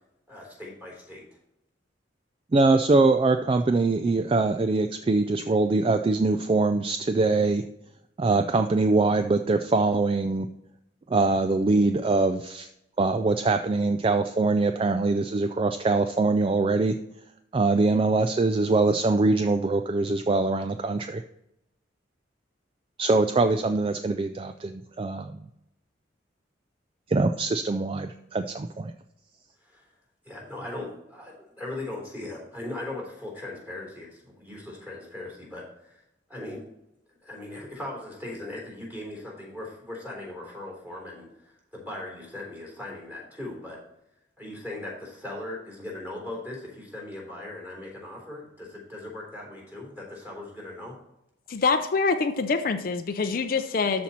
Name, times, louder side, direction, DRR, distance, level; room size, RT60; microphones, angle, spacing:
voice 1, 0.3-1.2 29.6-29.9 30.2-36.0 36.3-36.6 37.2-43.8 44.4-50.9, left 2 dB, 10° right, -2 dB, 3.7 m, -39 dB
voice 2, 2.5-7.7 8.2-10.5 11.1-12.7 13.0-17.0 17.5-21.2 23.0-25.5 27.1-28.9, right 3 dB, 30° right, 8 dB, 0.3 m, -23 dB
voice 3, 51.5-54.0, left 4 dB, 50° left, 8 dB, 0.5 m, -25 dB
13.0 x 4.3 x 4.3 m, 0.83 s
head